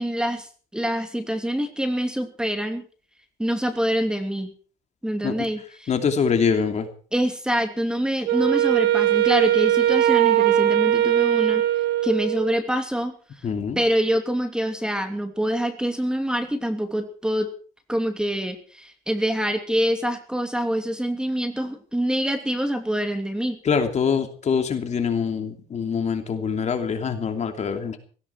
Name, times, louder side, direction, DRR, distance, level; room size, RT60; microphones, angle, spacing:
voice 1, 0.0-2.9 3.4-4.5 5.0-5.9 7.1-11.6 12.0-13.1 13.8-17.5 17.9-23.6, equal, 5° right, 7 dB, 2.8 m, -25 dB
voice 2, 5.9-6.9 13.4-13.8 23.6-28.0, left 6 dB, 40° left, 6 dB, 2.9 m, -24 dB
Wind instrument woodwind instrument, 8.3-12.6, right 12 dB, 90° right, 1.8 m, -20 dB
17.5 x 17.0 x 4.7 m, 0.41 s
cardioid pair, 110°, 17 cm